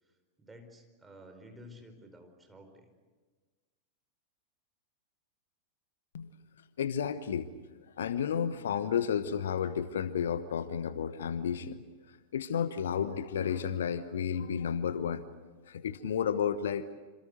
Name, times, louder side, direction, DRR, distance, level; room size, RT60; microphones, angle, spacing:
voice 1, 0.0-2.9, equal, 10° right, 5 dB, 4.7 m, -53 dB
voice 2, 6.8-7.5 8.0-11.8 12.3-15.2 15.7-16.9, left 8 dB, 65° left, 14 dB, 1.1 m, -32 dB
27.5 x 27.0 x 6.6 m, 1.4 s
figure-of-eight pair, 90°, 0 cm